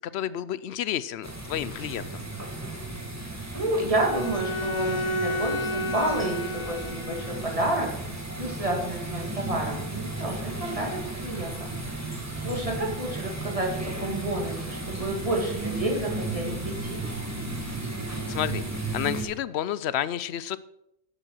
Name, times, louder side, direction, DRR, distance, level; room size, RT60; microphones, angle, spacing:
voice 1, 0.0-2.2 18.3-18.6 18.9-20.6, left 11 dB, 70° left, 17 dB, 0.8 m, -30 dB
sound 1, 1.2-19.3, right 2 dB, 15° right, 1.6 m, -34 dB
voice 2, 3.5-7.9 8.4-11.8 12.0-12.2 12.4-17.1, right 1 dB, 30° right, 0 dB, 2.6 m, -30 dB
Bowed string instrument, 4.1-7.6, left 1 dB, 30° left, 0.9 m, -31 dB
9.7 x 8.1 x 6.3 m, 0.80 s
omnidirectional pair, 1.2 m